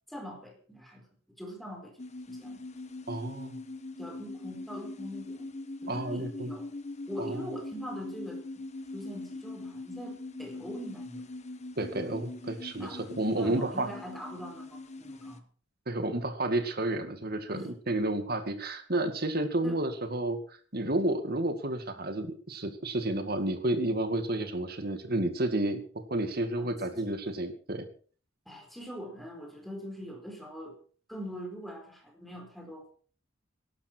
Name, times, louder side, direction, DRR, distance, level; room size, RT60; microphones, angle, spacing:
voice 1, 0.1-1.1 1.4-2.7 4.0-5.5 5.8-6.7 7.1-8.4 8.9-11.3 12.8-15.4 17.5-17.7 19.6-19.8 26.6-27.2 28.5-30.8 31.1-32.9, equal, ahead, 2 dB, 4.5 m, -43 dB
sound 1, 2.0-15.4, left 2 dB, 35° left, 1.3 m, -42 dB
voice 2, 3.1-3.6 5.9-6.5 7.2-7.5 11.8-13.9 15.9-20.4 20.7-25.8 26.1-27.9, right 1 dB, 55° right, 7 dB, 2.1 m, -31 dB
19.0 x 12.0 x 4.6 m, 0.42 s
head